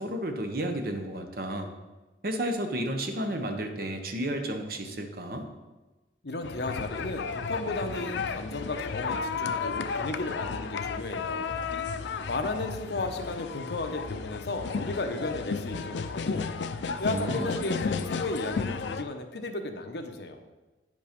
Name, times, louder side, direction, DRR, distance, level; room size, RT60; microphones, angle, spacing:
voice 1, 0.0-1.7 2.2-5.5 17.1-17.6, right 1 dB, 55° right, 5 dB, 1.0 m, -32 dB
voice 2, 6.2-11.6 12.3-16.5 17.0-20.4, left 2 dB, 70° left, 6 dB, 0.9 m, -34 dB
sound 1, 6.4-19.0, left 5 dB, 85° left, 0.5 m, -33 dB
9.4 x 5.4 x 5.2 m, 1.1 s
head